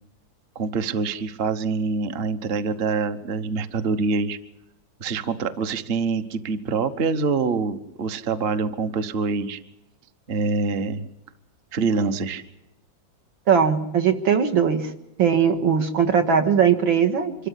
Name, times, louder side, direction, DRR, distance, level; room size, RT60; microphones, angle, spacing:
voice 1, 0.5-4.4 5.0-9.6 10.3-11.0 11.7-12.4, right 4 dB, 40° right, 10 dB, 1.0 m, -25 dB
voice 2, 13.5-14.9 15.2-17.5, right 7 dB, 70° right, 5 dB, 2.4 m, -20 dB
25.0 x 13.5 x 10.0 m, 0.87 s
omnidirectional pair, 2.2 m